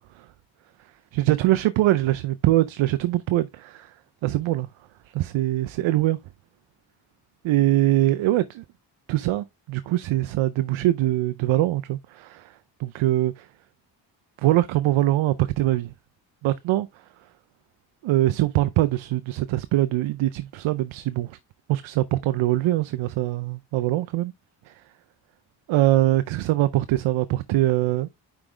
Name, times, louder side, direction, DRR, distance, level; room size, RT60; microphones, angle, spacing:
voice 1, 1.1-3.9 4.2-4.7 5.1-6.2 7.4-8.6 9.1-13.5 14.4-15.9 16.4-16.9 18.0-21.4 21.7-24.3 24.7-24.8 25.7-28.1, right 15 dB, 85° right, 0.6 m, -23 dB
5.9 x 5.1 x 3.3 m
cardioid pair, 60°, 46 cm